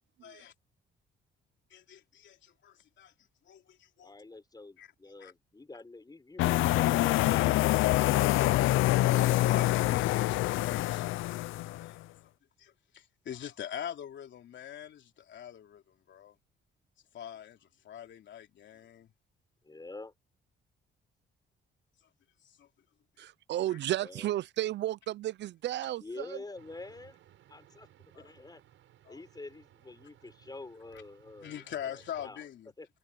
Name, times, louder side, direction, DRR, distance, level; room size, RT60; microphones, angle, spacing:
voice 1, 0.2-0.5 1.7-3.1 3.5-4.1 4.8-4.9 5.2-5.3 8.8-11.0 11.8-12.0 12.6-16.3 17.1-19.1 22.6-22.7 23.7-23.8 28.1-28.2 29.0-29.2 31.4-32.7, left 10 dB, 65° left, 3.3 m, -43 dB
voice 2, 4.0-8.3 19.6-20.1 24.0-24.3 26.0-27.2 27.5-27.9 28.1-28.6 29.1-32.4 32.8-32.9, left 3 dB, 20° left, 4.8 m, -46 dB
sound 1, 6.4-11.9, left 17 dB, 85° left, 0.5 m, -26 dB
voice 3, 23.2-26.4, right 14 dB, 65° right, 0.4 m, -33 dB
sound 2, 26.5-32.3, right 12 dB, 80° right, 7.5 m, -61 dB
cardioid pair, 90°, 20 cm